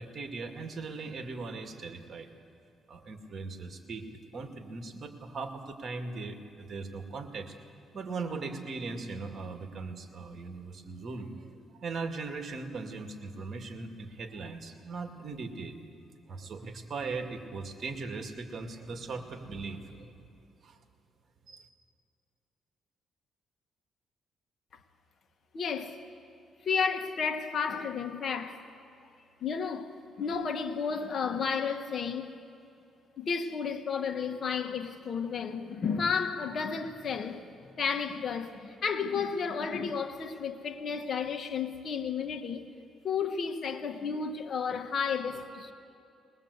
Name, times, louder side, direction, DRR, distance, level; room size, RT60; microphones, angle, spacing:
voice 1, 0.0-2.3 2.9-4.1 4.3-7.5 7.9-11.5 11.8-15.8 16.3-20.1 20.6-20.8 21.5-21.7, right 4 dB, 50° right, 2.2 m, -39 dB
voice 2, 25.5-26.0 26.6-28.7 29.4-32.4 33.2-37.5 37.8-42.6 43.0-45.7, left 6 dB, 55° left, 1.6 m, -32 dB
21.5 x 20.0 x 8.2 m
cardioid pair, 90°, 0 cm